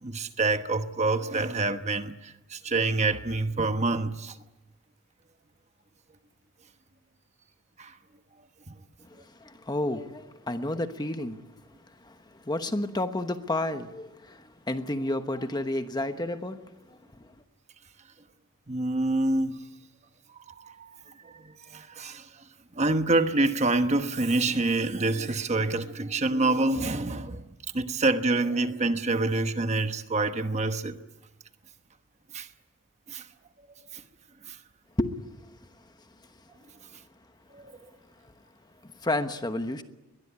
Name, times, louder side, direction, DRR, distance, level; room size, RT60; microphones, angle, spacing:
voice 1, 0.0-4.4 7.8-7.9 8.7-8.8 18.7-19.6 20.6-21.0 21.2-22.3 22.7-27.4 27.7-31.0 32.3-32.5 33.1-33.3 33.9-34.0 34.5-34.6 37.5-37.8, right 2 dB, 30° right, 1.1 m, -27 dB
voice 2, 9.0-11.4 11.7-17.3 35.0-35.3 35.6-36.3 38.2-38.3 38.8-39.8, left 1 dB, 20° left, 1.1 m, -32 dB
22.0 x 21.0 x 9.9 m
head